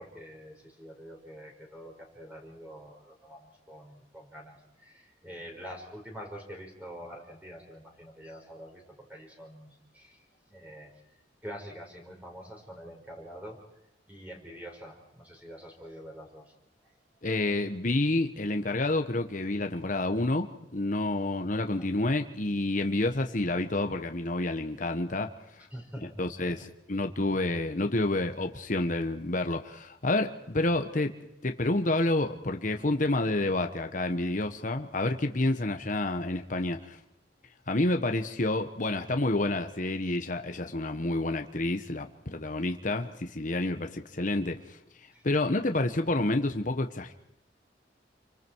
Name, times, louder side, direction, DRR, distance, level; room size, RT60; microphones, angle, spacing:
voice 1, 0.0-10.2 10.5-10.9 11.4-13.6 14.1-16.5 21.8-21.9 25.6-26.5 45.1-45.2, equal, 10° right, 0 dB, 5.1 m, -46 dB
voice 2, 17.2-25.3 26.2-31.1 31.4-37.0 37.7-44.8 45.2-47.1, left 2 dB, 45° left, 6 dB, 1.3 m, -29 dB
28.5 x 24.5 x 4.7 m, 0.87 s
head